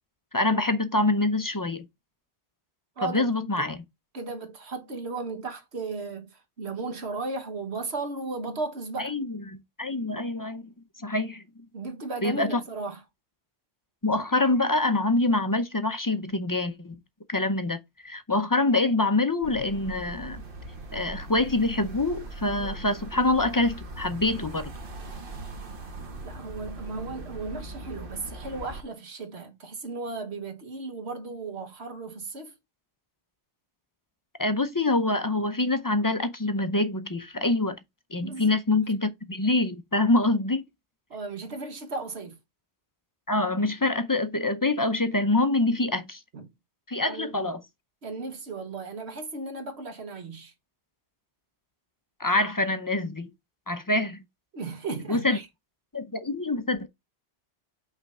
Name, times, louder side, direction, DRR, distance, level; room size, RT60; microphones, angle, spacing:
voice 1, 0.3-1.9 3.0-3.8 9.0-10.7 11.0-11.4 12.2-12.6 14.0-17.0 17.3-20.4 20.9-24.7 34.4-37.8 38.1-40.6 43.3-46.2 46.9-47.6 52.2-53.3 53.7-54.2 55.1-55.4 55.9-56.9, left 2 dB, 25° left, 0.5 m, -25 dB
voice 2, 3.0-3.3 3.6-3.7 4.1-9.1 11.7-13.0 26.2-32.5 38.2-38.5 41.1-42.4 46.3-46.5 47.0-47.3 48.0-50.5 54.5-55.5, right 3 dB, 70° right, 1.6 m, -35 dB
sound 1, 19.4-28.8, right 2 dB, 50° right, 1.3 m, -40 dB
5.7 x 3.4 x 5.4 m
omnidirectional pair, 1.2 m